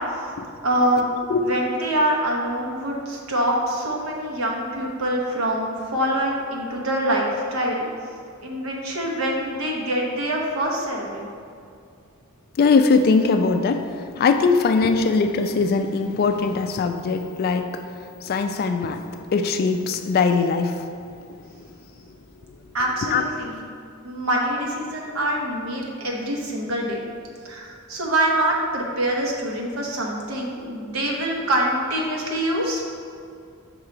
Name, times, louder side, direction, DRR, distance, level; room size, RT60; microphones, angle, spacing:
voice 1, 0.6-1.1 1.5-7.9 8.4-11.3 22.7-23.6 24.0-27.0 27.4-32.8, right 1 dB, 70° right, -1 dB, 0.9 m, -25 dB
voice 2, 12.6-17.8 18.2-20.8 21.5-21.7 22.1-22.2 23.0-23.2, left 4 dB, 45° left, 7 dB, 0.3 m, -21 dB
5.4 x 4.5 x 3.8 m, 2.3 s
head